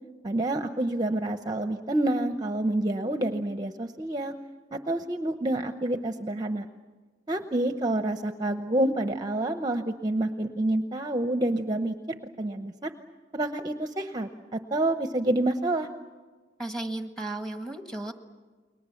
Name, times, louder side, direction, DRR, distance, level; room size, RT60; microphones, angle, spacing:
voice 1, 0.2-4.3 4.7-6.7 7.3-12.9 13.3-15.9, right 1 dB, 25° right, 7 dB, 0.8 m, -28 dB
voice 2, 16.6-18.1, right 2 dB, 5° left, 6 dB, 1.5 m, -34 dB
30.0 x 22.0 x 7.1 m, 1.4 s
head